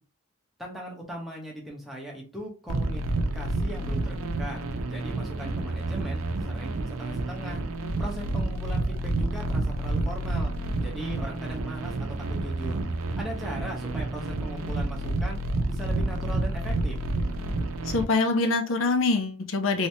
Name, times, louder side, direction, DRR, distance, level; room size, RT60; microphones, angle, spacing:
voice 1, 0.6-3.0 3.3-4.6 4.9-7.6 8.0-10.5 10.8-12.8 13.2-15.4 15.7-17.0, equal, ahead, -3 dB, 0.9 m, -39 dB
sound 1, 2.7-18.0, right 2 dB, 90° right, 0.5 m, -29 dB
voice 2, 17.8-19.9, left 3 dB, 75° left, 6 dB, 0.6 m, -24 dB
3.2 x 3.1 x 2.8 m, 0.35 s
head